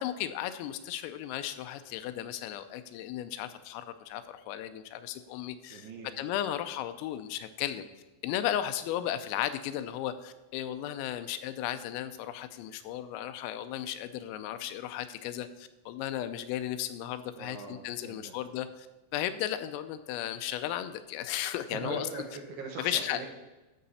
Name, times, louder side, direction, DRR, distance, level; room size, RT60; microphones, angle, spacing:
voice 1, 0.0-5.9 6.2-7.9 8.2-18.7 19.1-22.2 22.8-23.2, left 11 dB, 85° left, 10 dB, 3.2 m, -35 dB
voice 2, 5.7-6.1 17.4-18.6 21.7-23.3, right 3 dB, 70° right, 1 dB, 2.7 m, -41 dB
13.0 x 6.4 x 4.2 m, 1.1 s
omnidirectional pair, 6.0 m